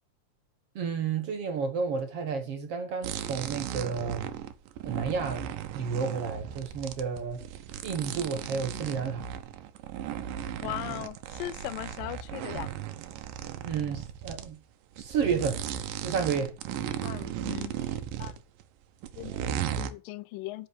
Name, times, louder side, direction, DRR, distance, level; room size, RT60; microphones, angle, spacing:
voice 1, 0.8-4.3 4.8-5.5 5.7-7.4 7.8-9.3 13.6-14.6 15.0-15.6 16.0-16.5, right 6 dB, 55° right, 2.0 m, -31 dB
sound 1, 3.0-14.5 15.0-18.6 19.0-19.9, right 10 dB, 85° right, 2.5 m, -36 dB
voice 2, 10.6-12.7 17.0-18.4 19.2-20.7, left 15 dB, 85° left, 2.3 m, -39 dB
8.7 x 5.8 x 7.3 m
omnidirectional pair, 3.8 m